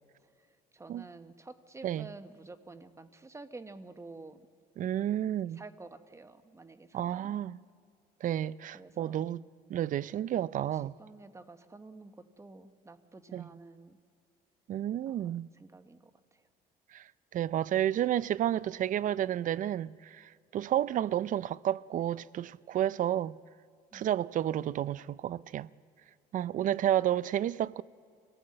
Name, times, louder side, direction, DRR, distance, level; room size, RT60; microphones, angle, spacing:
voice 1, 0.7-4.5 5.5-7.4 8.7-9.2 10.7-14.0 15.1-16.5 23.9-24.1, right 3 dB, 15° right, 1.2 m, -50 dB
voice 2, 4.8-5.6 6.9-7.6 8.2-9.4 9.7-10.9 13.3-13.5 14.7-15.5 16.9-17.0 17.3-23.4 23.9-25.7 26.3-27.8, right 11 dB, 50° right, 0.5 m, -31 dB
25.5 x 17.5 x 7.7 m
cardioid pair, 110°, 17 cm